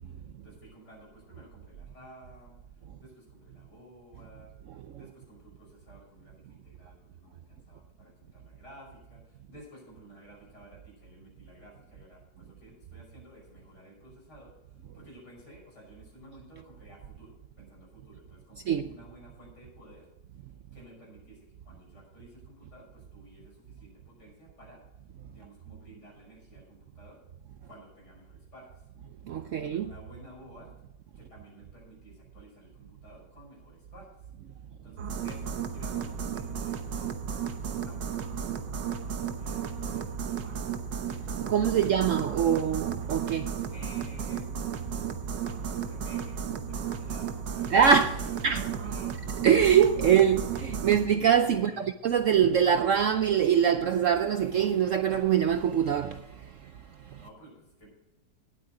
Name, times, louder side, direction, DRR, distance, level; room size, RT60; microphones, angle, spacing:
voice 1, 0.1-2.6 3.0-4.5 5.0-20.1 20.7-24.8 25.3-27.2 27.6-28.9 29.5-30.7 31.1-34.1 34.5-42.6 43.7-44.5 44.9-47.8 48.2-49.3 51.5-51.9 57.2-57.9, equal, 70° left, 6.4 m, -53 dB
voice 2, 29.2-29.9 41.5-43.6 47.7-48.6 49.4-57.2, right 8 dB, 65° right, 0.8 m, -24 dB
sound 1, 35.0-51.1, right 7 dB, 85° right, 1.7 m, -34 dB
18.0 x 8.7 x 3.8 m
omnidirectional pair, 1.9 m